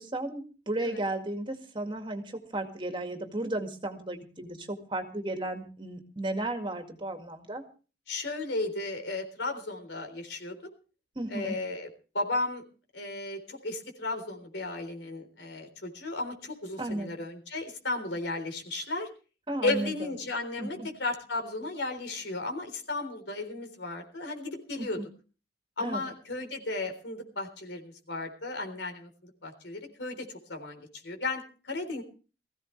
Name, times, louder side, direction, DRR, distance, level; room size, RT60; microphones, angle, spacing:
voice 1, 0.0-7.6 11.2-11.6 16.8-17.2 19.5-19.9 20.6-20.9 24.8-25.0 25.8-26.0, right 1 dB, 30° right, 6 dB, 2.0 m, -34 dB
voice 2, 8.1-10.7 11.3-11.9 12.1-12.6 12.9-19.1 19.6-25.0 25.8-32.0, left 2 dB, 80° left, 4 dB, 3.8 m, -34 dB
21.0 x 15.5 x 3.2 m, 0.35 s
head